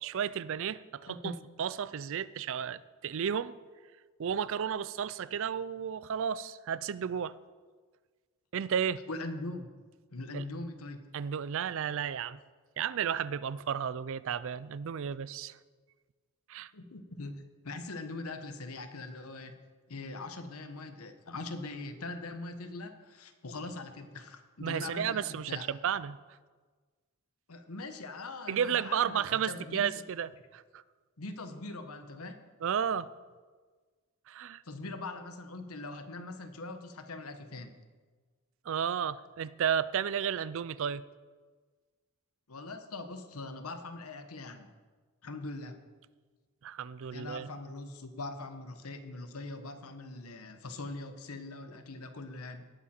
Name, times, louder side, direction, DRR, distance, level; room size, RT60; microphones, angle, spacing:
voice 1, 0.0-1.3 1.6-3.6 4.2-7.3 8.5-9.0 10.3-10.4 11.1-12.4 12.8-15.6 16.5-16.7 24.6-26.2 28.5-30.8 32.6-33.1 34.3-34.6 38.7-41.0 46.6-47.5, right 8 dB, 60° right, 18 dB, 0.4 m, -33 dB
voice 2, 1.1-1.4 9.1-9.7 10.1-11.1 16.7-19.6 19.9-25.7 27.5-29.9 31.2-32.4 34.6-37.7 42.5-44.7 45.2-45.8 47.1-52.7, left 2 dB, 75° left, 8 dB, 1.1 m, -42 dB
18.5 x 8.7 x 4.4 m, 1.4 s
head